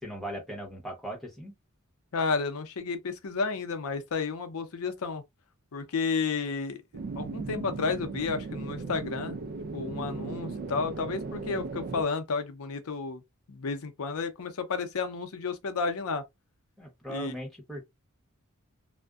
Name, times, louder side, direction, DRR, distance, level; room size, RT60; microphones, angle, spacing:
voice 1, 0.0-1.5 16.8-17.8, right 1 dB, ahead, 1.0 m, -38 dB
voice 2, 2.1-5.2 5.7-6.8 7.2-9.4 9.7-13.2 13.5-16.2 17.1-17.3, left 4 dB, 80° left, 0.6 m, -32 dB
sound 1, 6.9-12.0, right 4 dB, 45° right, 0.3 m, -37 dB
2.5 x 2.1 x 2.3 m
head